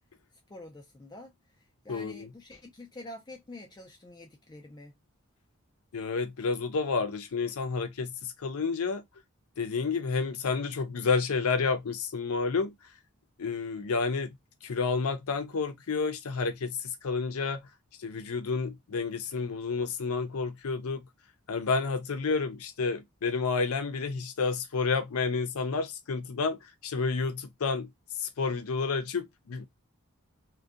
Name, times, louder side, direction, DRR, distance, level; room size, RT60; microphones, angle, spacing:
voice 1, 0.5-1.3 1.8-4.9, left 1 dB, 20° left, 0.3 m, -46 dB
voice 2, 1.9-2.3 5.9-9.0 9.6-12.7 13.4-14.4 14.6-17.6 18.0-21.0 21.5-27.9 28.2-29.7, left 4 dB, 80° left, 0.5 m, -30 dB
2.6 x 2.2 x 2.3 m
head